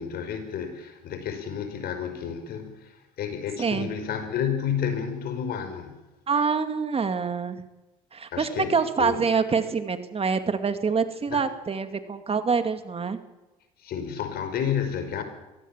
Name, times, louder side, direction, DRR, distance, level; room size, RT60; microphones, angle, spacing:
voice 1, 0.0-5.9 8.3-8.7 9.0-9.2 11.3-11.4 13.8-15.2, left 8 dB, 60° left, 5.2 m, -31 dB
voice 2, 3.6-3.9 6.3-7.6 8.1-13.2, right 5 dB, 35° right, 2.4 m, -26 dB
23.0 x 17.5 x 7.4 m
hypercardioid pair, 70°, 18 cm